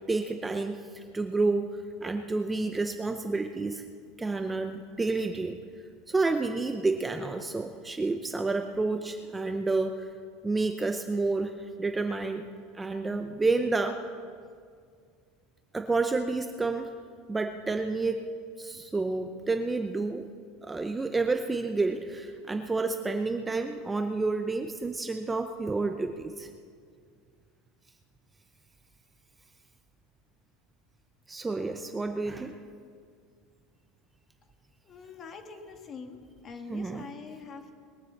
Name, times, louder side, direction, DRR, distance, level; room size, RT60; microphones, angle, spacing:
voice 1, 0.1-1.7 2.0-3.9 4.2-5.6 6.1-10.1 10.4-11.5 11.8-12.5 12.7-14.0 15.7-16.9 17.3-18.2 18.6-20.2 20.6-26.5 31.3-32.6 36.7-37.1, right 3 dB, 10° right, 6 dB, 0.6 m, -29 dB
voice 2, 34.9-36.2 36.4-37.7, left 5 dB, 30° left, 5 dB, 1.5 m, -44 dB
21.0 x 7.5 x 7.2 m, 2.1 s
supercardioid pair, 150°, 0 cm